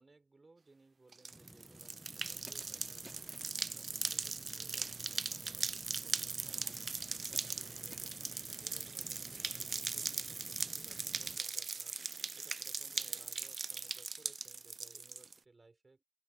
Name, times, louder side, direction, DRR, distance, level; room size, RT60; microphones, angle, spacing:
voice 1, 0.0-16.0, right 3 dB, 50° right, 4.7 m, -64 dB
sound 1, 1.1-15.3, right 4 dB, 80° right, 0.3 m, -40 dB
sound 2, 1.3-11.4, equal, 5° left, 0.6 m, -57 dB
sound 3, 2.2-10.3, right 1 dB, 20° right, 2.5 m, -60 dB
open air
wide cardioid pair, 85°, 0 cm